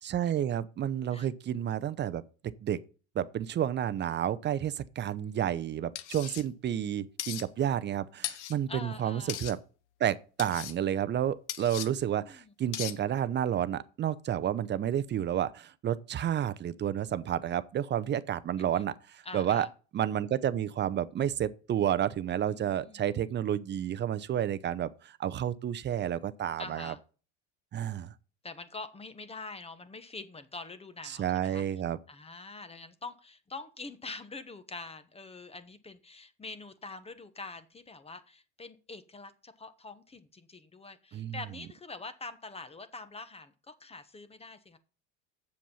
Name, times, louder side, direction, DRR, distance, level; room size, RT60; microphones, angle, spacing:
voice 1, 0.0-2.8 3.1-9.6 10.0-19.7 19.9-26.9 27.7-28.1 31.0-32.0 41.1-41.4, right 10 dB, 30° right, 0.7 m, -31 dB
sound 1, 6.0-6.4 7.2-7.4 8.2-8.6 9.3-9.5 10.4-10.7 11.5-11.9 12.7-13.0, left 13 dB, 90° left, 1.0 m, -37 dB
voice 2, 8.7-9.4 11.8-12.5 18.6-18.8 19.2-19.7 22.5-23.0 26.6-27.0 28.4-31.6 32.1-44.8, left 3 dB, 15° left, 1.1 m, -45 dB
7.4 x 7.3 x 5.5 m
supercardioid pair, 100°, 34 cm